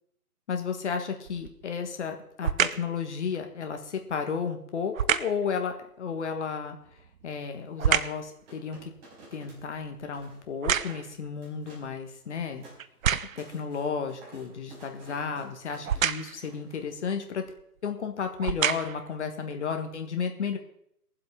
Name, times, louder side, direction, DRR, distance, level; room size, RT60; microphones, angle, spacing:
voice 1, 0.5-6.8 7.2-8.8 9.3-12.6 13.4-17.4 17.8-20.6, left 6 dB, 45° left, 5 dB, 1.6 m, -33 dB
sound 1, 1.3-1.7 2.4-2.9 4.9-5.4 6.9-8.3 8.8-11.3 11.9-12.0 12.8-13.5 15.8-16.4 17.5-17.6 18.3-19.1 19.7-19.8, right 8 dB, 60° right, 0.6 m, -28 dB
sound 2, 7.8-9.7 10.0-10.4 10.8-11.1 11.4-12.0 12.3-17.0, right 2 dB, 40° right, 4.9 m, -52 dB
21.5 x 7.7 x 3.6 m, 0.72 s
figure-of-eight pair, 150°, 47 cm